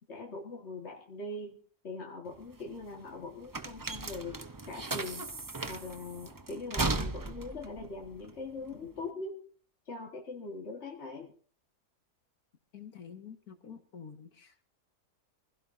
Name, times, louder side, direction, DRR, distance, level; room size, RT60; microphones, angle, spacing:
voice 1, 0.1-1.6 1.8-5.3 5.7-9.4 9.9-11.3, left 3 dB, 50° left, 0 dB, 1.9 m, -42 dB
sound 1, 2.3-9.1, right 3 dB, 35° right, 0.3 m, -37 dB
voice 2, 12.7-14.7, left 7 dB, 85° left, 6 dB, 2.1 m, -48 dB
26.5 x 16.0 x 2.7 m, 0.42 s
omnidirectional pair, 1.5 m